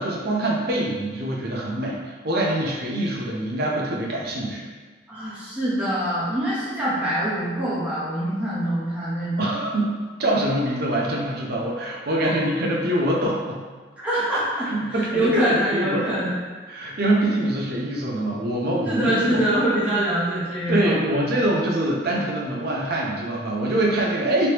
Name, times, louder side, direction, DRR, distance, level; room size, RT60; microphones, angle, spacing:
voice 1, 0.0-4.7 9.4-13.6 14.7-16.1 16.7-19.4 20.7-24.5, right 1 dB, 60° right, -2 dB, 0.6 m, -24 dB
voice 2, 5.1-9.6 12.2-12.3 14.0-16.4 16.8-16.9 18.9-21.2, right 1 dB, 10° right, -11 dB, 0.9 m, -24 dB
3.2 x 3.0 x 2.9 m, 1.4 s
head